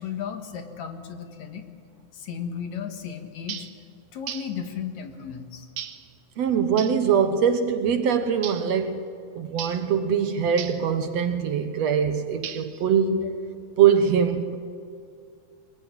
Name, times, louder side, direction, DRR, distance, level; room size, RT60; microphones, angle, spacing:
voice 1, 0.0-1.7 2.1-3.7 4.1-5.7, left 7 dB, 65° left, 2.8 m, -34 dB
sound 1, 3.5-3.8 4.3-4.6 5.8-6.1 6.8-7.0 8.4-8.7 9.6-9.9 10.6-10.9 12.4-12.9, right 10 dB, 80° right, 2.5 m, -36 dB
voice 2, 6.4-13.4 13.8-14.6, right 7 dB, 65° right, 2.1 m, -23 dB
22.0 x 21.5 x 9.7 m
omnidirectional pair, 3.6 m